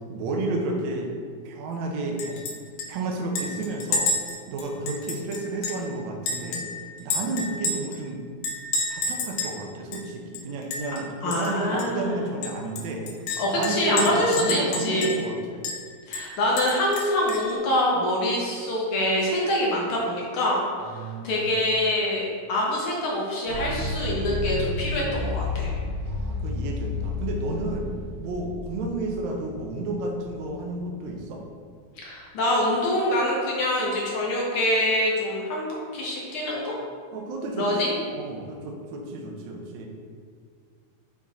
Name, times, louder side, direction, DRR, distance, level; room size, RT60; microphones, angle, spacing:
voice 1, 0.1-1.1 1.5-2.4 2.9-4.1 4.5-6.6 7.0-8.3 8.9-13.1 13.5-15.7 20.9-21.5 26.1-27.9 28.2-31.4 37.1-37.7 38.1-39.9, right 2 dB, 75° right, 1 dB, 1.9 m, -31 dB
Chink clink, 2.2-2.5 2.8-2.9 3.4-5.9 6.3-8.0 8.4-9.6 9.9-10.0 10.3-11.0 11.3-11.5 11.8-11.9 12.4-15.3 15.6-15.8 16.1-17.5, left 3 dB, 85° left, 2.3 m, -30 dB
voice 2, 11.2-12.3 13.4-15.2 16.1-22.2 22.5-25.7 32.0-35.7 35.9-36.7 37.5-37.9, left 1 dB, 65° left, -4 dB, 1.4 m, -25 dB
sound 1, 23.5-30.8, left 3 dB, 60° right, 1.9 m, -32 dB
7.5 x 3.5 x 4.1 m, 2.1 s
omnidirectional pair, 3.5 m